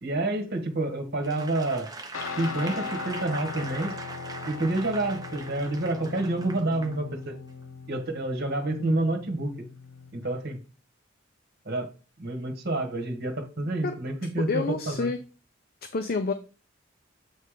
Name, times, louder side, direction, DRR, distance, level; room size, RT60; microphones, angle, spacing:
voice 1, 0.0-1.9 2.4-3.9 4.5-7.4 7.9-9.5 10.1-10.6 11.6-11.9 12.2-15.1, right 2 dB, 50° right, 1.5 m, -28 dB
Applause / Crowd, 1.2-7.0 7.5-7.6, right 3 dB, 20° right, 0.9 m, -41 dB
Guitar, 2.1-10.3, left 4 dB, 90° left, 0.8 m, -39 dB
voice 2, 14.4-15.2 15.9-16.3, left 4 dB, 50° left, 0.5 m, -28 dB
8.1 x 3.3 x 5.0 m
head